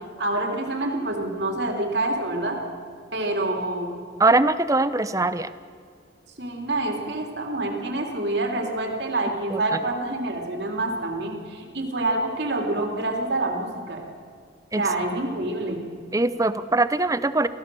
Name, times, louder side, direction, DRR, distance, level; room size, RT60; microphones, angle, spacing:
voice 1, 0.2-2.6 3.1-3.9 6.4-14.0 14.8-15.8, right 2 dB, 60° right, 2 dB, 3.2 m, -27 dB
voice 2, 4.2-5.5 9.5-9.8 14.7-14.8 15.7-15.8 16.1-17.5, right 2 dB, 15° right, 14 dB, 0.6 m, -22 dB
24.5 x 16.5 x 7.0 m, 2.2 s
head